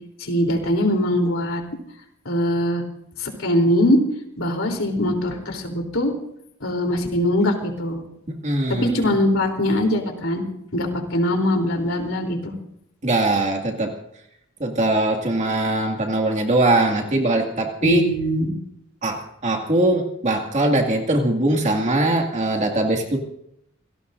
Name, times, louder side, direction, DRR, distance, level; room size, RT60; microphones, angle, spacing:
voice 1, 0.2-1.6 2.3-2.8 3.2-4.0 4.4-6.1 6.6-8.0 8.8-10.4 10.7-12.5 17.8-18.5, left 1 dB, 65° left, 2 dB, 3.6 m, -21 dB
voice 2, 8.4-9.1 13.0-13.9 14.6-18.1 19.0-23.2, right 2 dB, 35° right, 2 dB, 2.2 m, -21 dB
28.5 x 17.5 x 2.7 m, 0.75 s
head